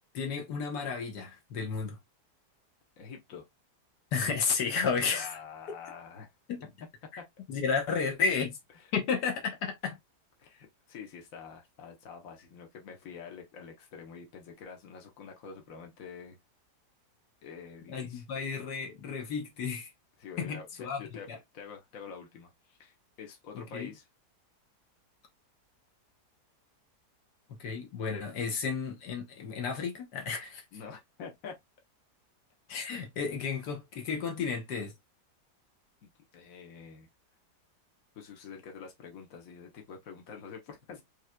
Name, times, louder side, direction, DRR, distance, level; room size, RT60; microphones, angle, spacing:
voice 1, 0.1-2.0 4.1-5.4 6.5-6.6 7.1-7.2 7.5-8.6 8.9-10.0 17.9-19.9 20.4-21.0 21.3-21.4 23.5-23.9 27.6-30.6 32.7-34.9, left 5 dB, 80° left, 1.5 m, -32 dB
voice 2, 3.0-3.5 5.1-6.3 7.2-7.3 8.8-8.9 10.4-16.4 17.4-18.2 20.2-21.3 21.5-24.1 30.7-31.6 36.0-37.1 38.1-41.0, left 6 dB, 60° left, 1.4 m, -47 dB
5.4 x 3.0 x 2.2 m
omnidirectional pair, 1.8 m